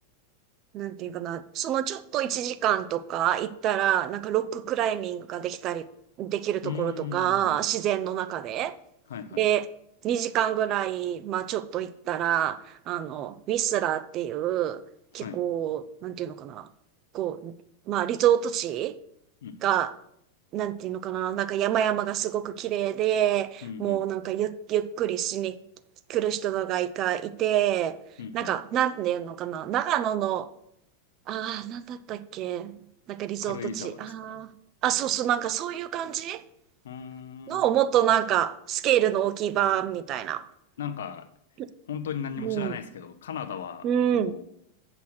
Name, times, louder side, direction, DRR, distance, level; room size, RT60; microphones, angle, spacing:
voice 1, 0.7-5.8 6.2-8.8 9.4-9.7 10.0-14.8 15.1-16.7 17.1-17.5 17.9-18.9 19.6-19.9 20.5-25.6 26.1-28.0 28.3-30.5 31.3-32.8 33.1-34.5 34.8-36.4 37.5-40.4 41.6-41.7 42.4-42.8 43.8-44.4, right 11 dB, 35° right, 0.5 m, -27 dB
voice 2, 6.6-7.6 9.1-9.4 15.2-15.4 19.4-19.7 23.6-24.0 28.2-28.5 33.4-34.4 36.8-37.6 40.8-41.3 41.9-43.9 44.1-44.4, left 7 dB, 60° left, 0.7 m, -37 dB
8.2 x 6.0 x 6.1 m
figure-of-eight pair, 90°, 0 cm